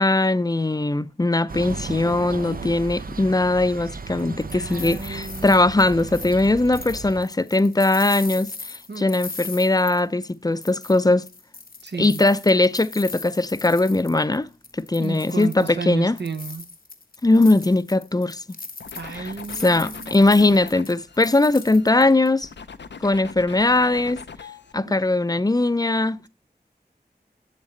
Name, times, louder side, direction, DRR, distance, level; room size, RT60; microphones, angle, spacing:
voice 1, 0.0-11.2 12.0-14.5 14.7-16.1 17.2-18.4 19.2-19.3 19.6-22.5 23.0-24.2 24.7-26.2, left 2 dB, 20° left, 0.5 m, -20 dB
sound 1, 1.5-7.2, right 4 dB, 55° right, 0.5 m, -35 dB
sound 2, 4.2-10.3 10.6-14.4 14.6-15.8 16.2-22.3, left 4 dB, 55° left, 0.8 m, -39 dB
voice 2, 4.5-5.7 8.9-9.1 11.8-12.2 15.0-16.7 18.9-20.3 24.8-25.0, right 4 dB, 80° right, 0.9 m, -32 dB
sound 3, 18.8-22.0 22.4-24.7, left 5 dB, 85° left, 0.6 m, -41 dB
7.3 x 7.2 x 3.2 m
wide cardioid pair, 45°, 18 cm